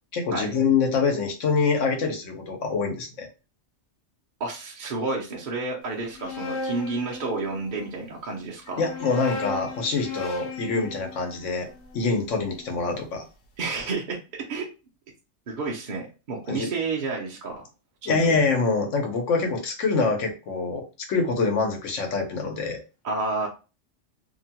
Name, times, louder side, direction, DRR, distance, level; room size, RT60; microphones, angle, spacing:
voice 1, 0.1-3.3 8.8-11.7 11.9-13.3 16.5-16.7 18.1-22.8, left 4 dB, 90° left, 3 dB, 1.1 m, -25 dB
voice 2, 4.4-8.8 13.6-14.2 14.5-14.7 15.5-17.7 18.0-18.2 23.0-23.5, right 3 dB, 50° right, -2 dB, 0.7 m, -30 dB
sound 1, 6.0-7.9 8.7-12.8, left 3 dB, 65° left, 0.9 m, -36 dB
2.7 x 2.2 x 2.8 m, 0.32 s
omnidirectional pair, 1.2 m